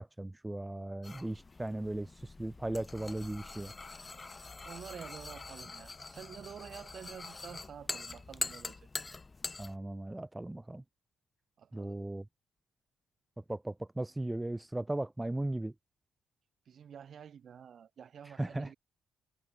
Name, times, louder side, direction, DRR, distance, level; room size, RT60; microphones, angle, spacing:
voice 1, 0.0-3.7 9.6-10.8 11.7-12.3 13.4-15.7 18.2-18.7, right 1 dB, 10° right, 1.4 m, -37 dB
sound 1, 1.0-9.8, left 3 dB, 30° left, 1.4 m, -44 dB
voice 2, 4.6-8.9 11.6-12.0 16.7-18.7, right 8 dB, 55° right, 3.9 m, -49 dB
cardioid pair, 75°, 0 cm